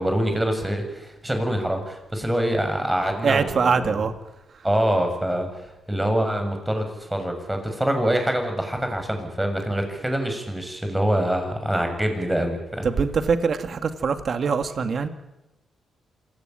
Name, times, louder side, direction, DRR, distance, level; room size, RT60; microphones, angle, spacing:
voice 1, 0.0-4.0 4.6-12.9, right 1 dB, 10° right, 5 dB, 6.9 m, -25 dB
voice 2, 3.2-4.1 12.8-15.1, right 5 dB, 55° right, 9 dB, 2.3 m, -23 dB
27.0 x 17.5 x 9.2 m, 0.97 s
cardioid pair, 95°, 0 cm